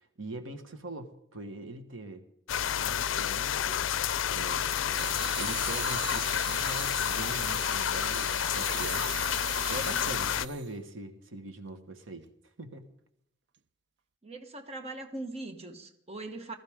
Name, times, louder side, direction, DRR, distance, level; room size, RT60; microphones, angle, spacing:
voice 1, 0.0-2.3 2.8-3.8 4.3-9.4 9.7-12.3 12.6-12.9, right 2 dB, 85° right, 8 dB, 1.5 m, -42 dB
sound 1, 2.5-10.5, left 9 dB, 75° left, 0.5 m, -30 dB
voice 2, 4.9-5.3 14.2-16.5, right 2 dB, 30° right, 6 dB, 1.4 m, -41 dB
sound 2, 5.0-10.7, right 11 dB, 60° right, 0.5 m, -40 dB
20.0 x 14.0 x 3.7 m, 0.76 s
head